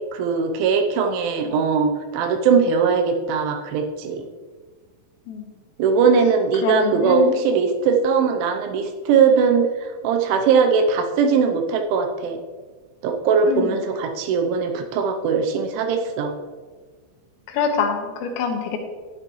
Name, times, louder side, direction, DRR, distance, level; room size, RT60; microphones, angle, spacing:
voice 1, 0.1-4.2 5.8-12.4 13.0-16.3, right 5 dB, 80° right, 5 dB, 3.0 m, -20 dB
voice 2, 6.6-7.4 13.5-13.7 17.5-18.8, left 6 dB, 85° left, 3 dB, 3.9 m, -25 dB
13.0 x 9.4 x 3.1 m, 1.5 s
omnidirectional pair, 5.8 m